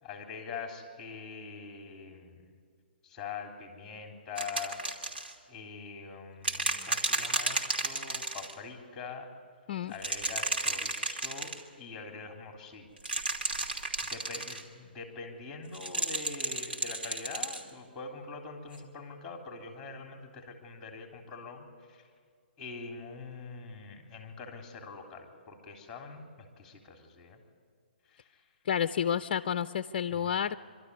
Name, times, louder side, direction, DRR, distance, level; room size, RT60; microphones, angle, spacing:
voice 1, 0.0-2.4 3.0-4.8 5.5-9.3 9.9-12.9 14.1-22.1 22.6-27.4 28.1-28.4 30.1-30.3, left 4 dB, 10° left, 3 dB, 3.3 m, -44 dB
sound 1, 4.4-5.3 6.4-8.5 9.9-11.6 13.0-14.6 15.7-17.6 18.7-18.8, right 2 dB, 80° right, 2.8 m, -32 dB
voice 2, 28.7-30.6, left 8 dB, 50° left, 12 dB, 0.5 m, -30 dB
25.0 x 12.5 x 9.7 m, 2.1 s
hypercardioid pair, 140°, 6 cm